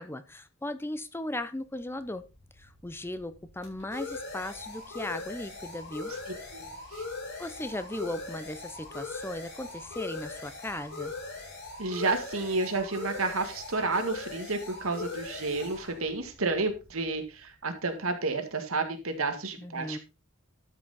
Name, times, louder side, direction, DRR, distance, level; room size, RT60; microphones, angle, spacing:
voice 1, 0.0-2.2 2.6-6.1 7.4-11.1 19.6-20.0, left 1 dB, 10° left, 0.7 m, -37 dB
sound 1, 2.0-17.4, left 3 dB, 55° left, 5.5 m, -41 dB
voice 2, 6.5-7.0 11.8-20.0, right 3 dB, 85° right, 2.0 m, -31 dB
12.5 x 6.2 x 4.1 m
head